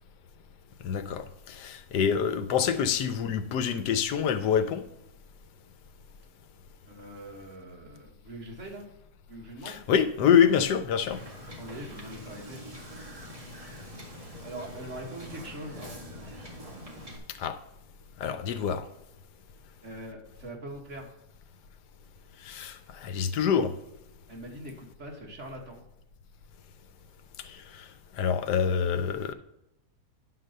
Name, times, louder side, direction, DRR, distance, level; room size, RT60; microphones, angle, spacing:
voice 1, 0.8-4.8 9.7-11.2 17.4-17.6 18.2-18.9 22.4-23.7 27.4-27.9 28.2-29.3, left 7 dB, 85° left, 1.3 m, -26 dB
voice 2, 6.9-8.9 9.3-9.8 11.6-12.6 14.4-15.9 19.8-21.1 24.3-25.8, right 1 dB, 45° right, 1.9 m, -42 dB
Wind / Boat Water vehicle, 11.1-17.2, equal, 20° right, 1.8 m, -44 dB
9.9 x 3.9 x 6.5 m
omnidirectional pair, 1.8 m